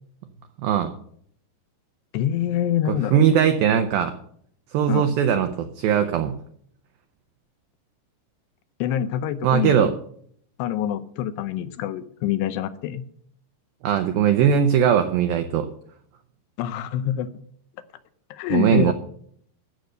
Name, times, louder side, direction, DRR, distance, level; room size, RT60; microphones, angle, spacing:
voice 1, 0.6-0.9 2.9-4.1 4.7-6.4 9.4-9.9 13.8-15.7 18.5-18.9, right 8 dB, 80° right, 7 dB, 2.1 m, -20 dB
voice 2, 2.1-3.2 4.9-5.1 8.8-9.9 10.6-13.0 16.6-17.3 18.3-18.9, left 11 dB, 80° left, 12 dB, 2.7 m, -26 dB
14.5 x 6.6 x 6.6 m, 0.63 s
omnidirectional pair, 5.1 m